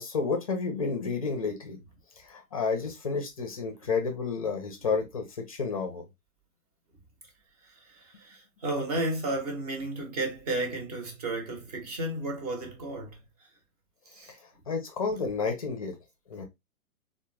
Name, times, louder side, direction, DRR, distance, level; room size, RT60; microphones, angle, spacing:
voice 1, 0.0-1.8 2.2-6.0 14.7-15.9 16.3-16.4, left 4 dB, 25° left, 0.5 m, -30 dB
voice 2, 7.6-13.2 14.1-14.3, right 2 dB, 25° right, 0.8 m, -33 dB
3.6 x 2.2 x 3.0 m
figure-of-eight pair, 125°, 44 cm